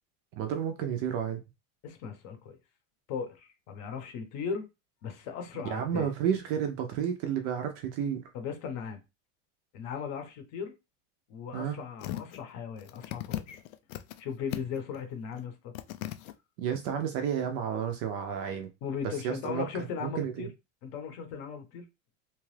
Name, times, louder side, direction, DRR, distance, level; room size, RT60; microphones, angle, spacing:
voice 1, 0.3-1.4 5.6-8.3 11.5-11.8 16.6-18.7 19.0-19.6 20.0-20.5, right 8 dB, 40° right, 0.4 m, -31 dB
voice 2, 1.8-2.6 3.1-4.6 5.0-6.1 8.3-9.0 9.7-10.7 11.3-13.6 14.2-15.7 18.8-20.5 20.8-21.9, left 6 dB, 40° left, 0.7 m, -37 dB
sound 1, 12.0-12.4 12.8-14.2 14.5-15.0 15.3-15.4 15.7-16.3 16.9-17.0, left 15 dB, 90° left, 0.5 m, -37 dB
2.8 x 2.3 x 3.1 m
supercardioid pair, 160°, 39 cm